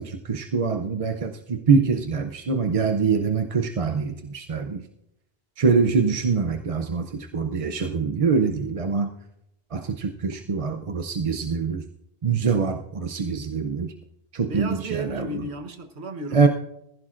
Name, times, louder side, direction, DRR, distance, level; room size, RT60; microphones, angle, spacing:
voice 1, 0.0-4.8 5.6-9.1 9.7-11.8 12.2-13.9 14.3-15.3 16.3-16.5, right 5 dB, 40° right, 5 dB, 0.6 m, -24 dB
voice 2, 14.4-16.5, right 2 dB, 80° right, 6 dB, 1.5 m, -34 dB
19.5 x 15.0 x 2.5 m, 0.82 s
omnidirectional pair, 1.1 m